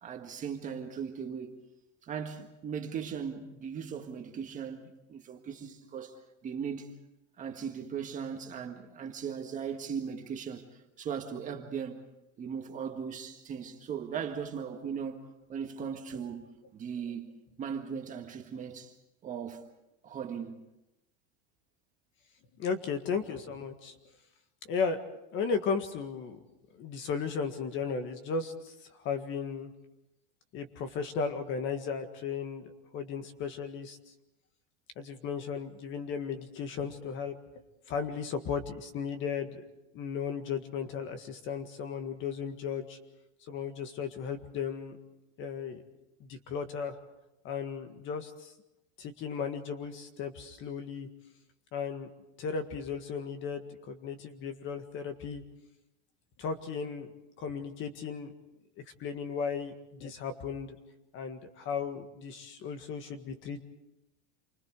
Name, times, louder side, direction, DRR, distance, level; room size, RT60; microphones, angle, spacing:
voice 1, 0.0-1.5 2.0-4.8 5.1-6.1 6.4-6.9 7.4-10.7 11.0-12.0 12.4-15.2 15.5-18.9 19.2-19.6 20.0-20.6, right 7 dB, 20° right, 1.7 m, -38 dB
voice 2, 22.6-24.0 24.7-25.0 25.3-26.4 26.7-29.7 30.5-34.0 34.9-37.3 37.9-39.6 39.9-43.0 43.5-45.0 45.4-45.8 46.2-47.0 47.4-48.5 49.0-51.1 51.7-52.1 52.4-55.4 56.4-57.1 57.4-58.3 59.0-60.8 61.1-63.6, left 6 dB, 35° left, 1.8 m, -35 dB
28.5 x 24.5 x 4.8 m
supercardioid pair, 170°, 35 cm